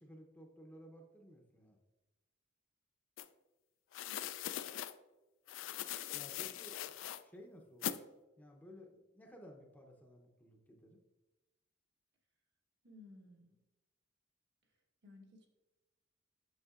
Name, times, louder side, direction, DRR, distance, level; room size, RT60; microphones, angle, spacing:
voice 1, 0.0-1.8 6.1-6.8 7.2-8.0 8.4-11.0, equal, 10° left, 2 dB, 0.7 m, -56 dB
sound 1, 3.2-3.3 3.9-4.9 5.5-7.2 7.8-8.0, left 11 dB, 70° left, 0.3 m, -41 dB
voice 2, 12.8-13.6 15.0-15.5, left 2 dB, 60° right, 0 dB, 1.3 m, -57 dB
8.0 x 6.5 x 2.4 m, 1.1 s
head